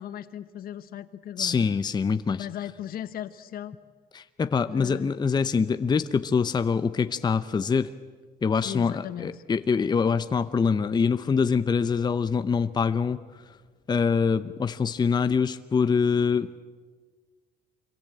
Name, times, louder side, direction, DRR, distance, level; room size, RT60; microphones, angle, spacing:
voice 1, 0.0-1.6 2.4-3.7 4.7-5.2 8.6-9.4, left 10 dB, 60° left, 13 dB, 1.3 m, -37 dB
voice 2, 1.4-2.5 4.1-7.9 8.4-13.2 13.9-16.6, left 5 dB, 25° left, 11 dB, 0.8 m, -24 dB
26.0 x 22.5 x 9.0 m, 1.5 s
cardioid pair, 110°, 17 cm